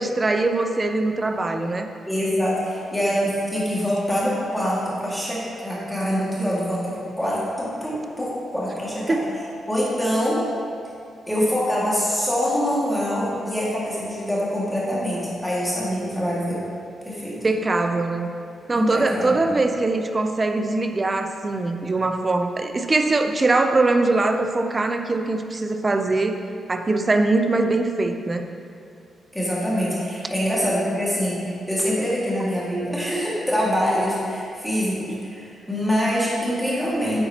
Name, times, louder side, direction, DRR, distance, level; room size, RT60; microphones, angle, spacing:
voice 1, 0.0-1.9 9.1-9.3 17.4-18.3 18.7-26.4 26.7-28.4, right 2 dB, 20° right, 6 dB, 0.5 m, -22 dB
voice 2, 2.1-9.2 9.7-10.4 11.3-16.6 17.0-17.5 18.7-19.5 29.3-37.3, equal, 5° left, -7 dB, 2.0 m, -24 dB
9.9 x 8.3 x 2.9 m, 2.5 s
wide cardioid pair, 155°, 0 cm